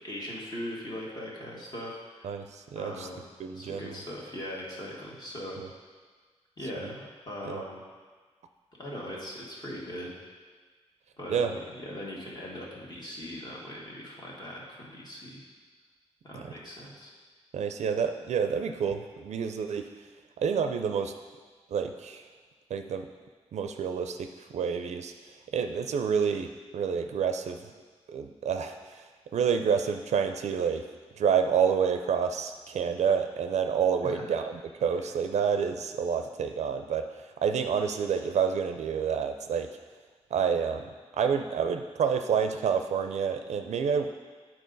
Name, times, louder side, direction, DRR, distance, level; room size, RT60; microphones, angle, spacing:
voice 1, 0.0-2.3 2.7-3.2 3.5-5.6 6.6-7.8 8.8-10.1 11.2-15.4 16.2-17.1 34.0-34.4, left 1 dB, 40° left, -4 dB, 1.6 m, -40 dB
voice 2, 2.2-3.1 3.4-4.0 5.6-5.7 6.8-6.9 7.4-7.6 11.3-11.5 16.3-16.5 17.5-19.9 20.4-21.1 21.7-22.2 22.7-23.1 23.5-25.1 25.5-27.6 28.1-29.0 29.3-30.8 31.2-39.7 40.3-40.9 41.2-44.1, right 7 dB, 85° right, 7 dB, 0.4 m, -28 dB
8.5 x 4.4 x 3.9 m, 1.5 s
wide cardioid pair, 95°, 11 cm